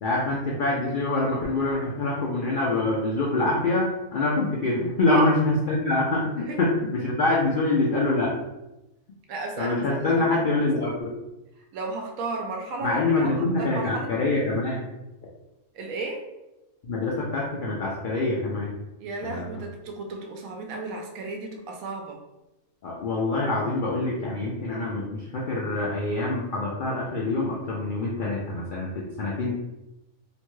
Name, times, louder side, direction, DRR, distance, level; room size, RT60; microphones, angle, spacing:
voice 1, 0.0-8.4 9.6-11.1 12.8-14.8 16.8-18.8 19.2-19.6 22.8-29.6, left 2 dB, 75° left, -4 dB, 0.4 m, -25 dB
voice 2, 9.3-10.7 11.7-14.1 15.7-16.2 19.0-22.2, right 3 dB, 80° right, 2 dB, 1.0 m, -34 dB
3.0 x 2.1 x 3.0 m, 0.96 s
omnidirectional pair, 1.5 m